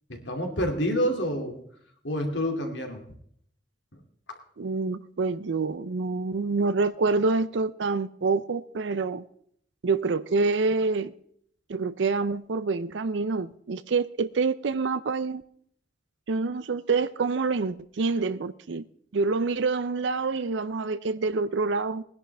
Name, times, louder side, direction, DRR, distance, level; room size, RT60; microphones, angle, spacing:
voice 1, 0.1-1.6 2.0-3.0 3.9-4.0, equal, 80° left, 2.6 m, -28 dB
voice 2, 4.6-9.2 9.8-11.1 11.7-15.4 16.3-18.8 19.1-22.0, right 4 dB, 80° right, 0.5 m, -27 dB
20.5 x 10.5 x 3.4 m
head